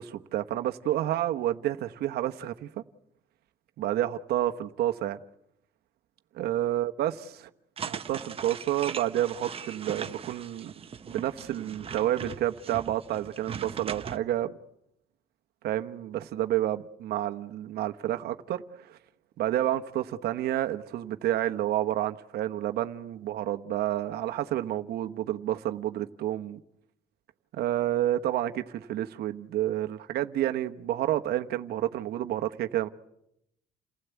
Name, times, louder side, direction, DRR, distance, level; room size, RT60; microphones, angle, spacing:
voice 1, 0.0-2.7 3.8-5.2 6.4-7.1 7.4-7.5 7.9-10.7 11.0-14.5 15.6-18.6 18.9-19.0 19.4-26.6 27.5-32.9, right 13 dB, 70° right, 1.1 m, -29 dB
sound 1, 7.8-14.2, right 7 dB, 35° right, 1.1 m, -39 dB
29.0 x 16.0 x 8.3 m
cardioid pair, 110°, 17 cm